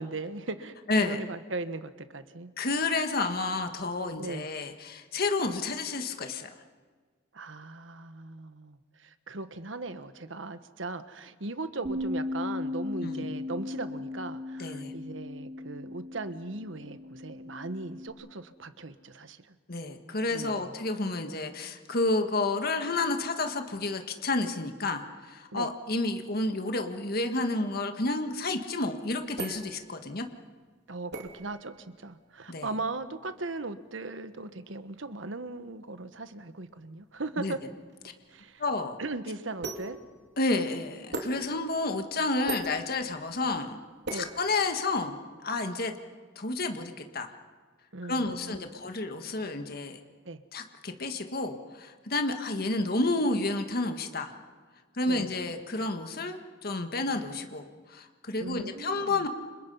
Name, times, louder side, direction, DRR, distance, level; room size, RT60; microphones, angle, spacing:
voice 1, 0.0-2.5 4.2-4.5 7.3-19.5 20.3-20.8 25.5-25.7 30.9-37.6 38.3-38.6 39.0-40.0 44.1-44.3 47.9-48.8 50.2-50.4 55.1-55.3 58.4-59.2, right 3 dB, 90° right, 11 dB, 1.3 m, -38 dB
voice 2, 0.9-1.2 2.6-6.5 13.0-13.2 14.6-14.9 19.7-30.2 32.5-32.7 37.4-37.5 38.6-39.0 40.4-43.8 44.1-45.2 45.4-45.9 46.4-47.3 48.0-50.0 50.5-54.3 55.0-59.3, left 2 dB, 55° left, 5 dB, 1.6 m, -30 dB
Bass guitar, 11.8-18.1, left 2 dB, 40° right, 4.5 m, -37 dB
sound 1, 28.7-45.1, right 3 dB, 65° right, 3.0 m, -43 dB
29.5 x 26.5 x 5.5 m, 1.5 s
head